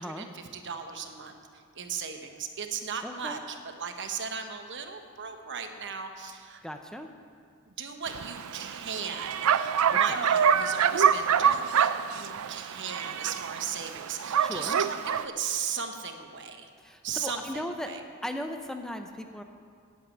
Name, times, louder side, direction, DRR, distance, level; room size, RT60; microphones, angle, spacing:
voice 1, 0.0-1.4 1.7-6.6 7.8-16.7 17.0-18.0, right 6 dB, 55° right, 6 dB, 1.0 m, -37 dB
voice 2, 3.0-3.4 6.6-7.1 9.9-10.2 14.4-14.8 16.8-17.9 18.2-19.4, left 1 dB, 5° left, 5 dB, 0.5 m, -37 dB
Bark, 8.1-15.2, right 8 dB, 75° right, 0.4 m, -26 dB
10.0 x 8.4 x 8.3 m, 2.2 s
head